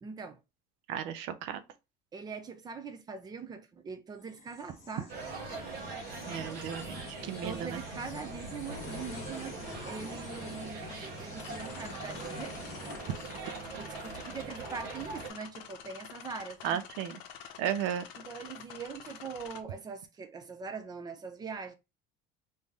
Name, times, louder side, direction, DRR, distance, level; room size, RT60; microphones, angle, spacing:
voice 1, 0.0-0.4 2.1-5.1 7.4-9.5 9.9-12.6 13.6-16.8 18.2-21.7, right 5 dB, 20° right, 0.4 m, -42 dB
voice 2, 0.9-1.6 6.3-7.8 16.6-17.2 17.6-18.0, right 9 dB, 75° right, 0.6 m, -34 dB
sound 1, 4.2-13.9, left 3 dB, 30° left, 1.3 m, -47 dB
sound 2, 5.1-15.3, right 4 dB, 50° right, 1.0 m, -42 dB
sound 3, 10.9-19.6, left 9 dB, 65° left, 0.7 m, -48 dB
3.1 x 2.7 x 3.6 m
cardioid pair, 165°, 21 cm